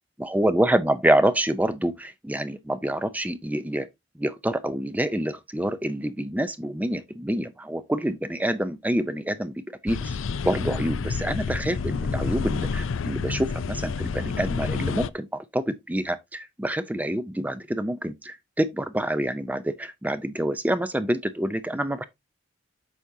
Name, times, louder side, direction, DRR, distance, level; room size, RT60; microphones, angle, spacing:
voice 1, 0.2-3.9 4.2-9.5 9.8-10.2 10.4-22.0, right 1 dB, 10° right, 0.5 m, -27 dB
sound 1, 9.9-15.1, left 5 dB, 85° left, 0.5 m, -29 dB
8.3 x 6.0 x 2.7 m
head